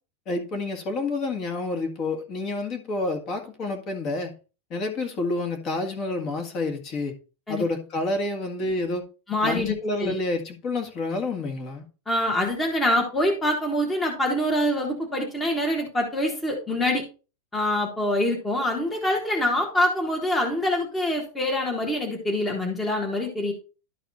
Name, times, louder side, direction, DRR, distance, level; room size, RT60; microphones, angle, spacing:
voice 1, 0.2-4.3 4.7-7.1 7.5-9.0 9.4-11.9, left 2 dB, 30° left, 1.7 m, -29 dB
voice 2, 9.3-9.7 10.0-10.1 12.1-17.0 17.5-23.5, left 1 dB, 10° left, 1.4 m, -25 dB
12.0 x 4.1 x 4.1 m
supercardioid pair, 165°, 0 cm